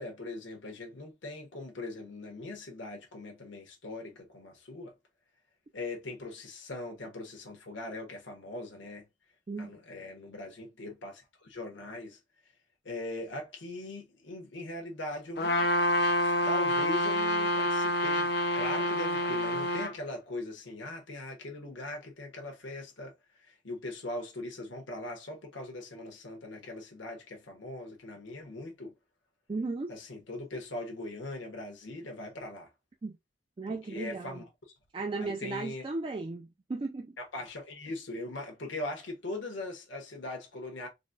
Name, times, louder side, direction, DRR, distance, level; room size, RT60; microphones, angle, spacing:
voice 1, 0.0-4.9 5.7-9.0 9.6-12.2 12.8-15.7 16.2-28.9 29.9-32.7 33.7-34.4 35.2-35.8 37.2-40.9, left 2 dB, 80° left, 1.1 m, -40 dB
Trumpet, 15.4-19.9, left 1 dB, 60° left, 0.6 m, -27 dB
voice 2, 29.5-29.9 33.0-33.2 33.6-34.4 34.9-37.2, right 3 dB, 30° right, 0.3 m, -35 dB
4.0 x 2.1 x 2.5 m
head